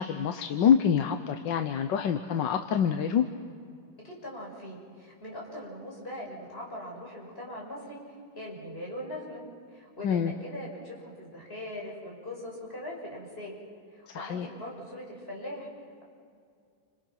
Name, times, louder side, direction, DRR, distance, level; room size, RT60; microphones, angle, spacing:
voice 1, 0.0-3.2 10.0-10.3 14.1-14.5, left 8 dB, 70° left, 7 dB, 1.5 m, -26 dB
voice 2, 4.0-9.4 9.7-13.5 13.9-15.7, left 1 dB, 30° left, -3 dB, 6.0 m, -41 dB
29.0 x 27.5 x 5.9 m, 2.3 s
omnidirectional pair, 2.1 m